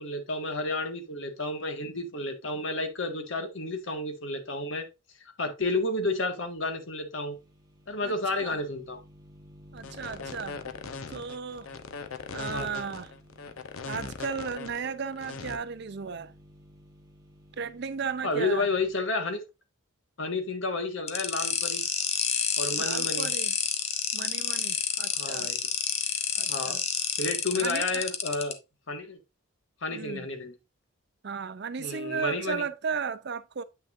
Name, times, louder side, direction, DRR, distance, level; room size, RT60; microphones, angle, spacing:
voice 1, 0.0-4.9 5.4-7.4 7.9-9.0 12.5-12.8 18.2-19.4 20.2-21.8 22.6-23.3 25.1-25.6 26.5-26.8 27.2-28.6 28.9-29.2 29.8-30.5 31.8-32.6, left 2 dB, 65° left, 1.7 m, -31 dB
sound 1, 7.2-18.9, equal, 20° right, 1.5 m, -55 dB
voice 2, 8.0-8.6 9.7-10.6 11.1-11.7 12.3-13.1 13.8-16.3 17.6-18.7 22.8-23.5 24.1-25.5 26.4-26.8 27.5-28.1 29.9-30.3 31.2-33.6, right 6 dB, 55° right, 0.5 m, -35 dB
sound 2, 9.7-15.6, left 4 dB, 85° left, 0.8 m, -40 dB
sound 3, 21.1-28.5, left 7 dB, 30° left, 0.8 m, -29 dB
8.7 x 6.0 x 2.6 m
head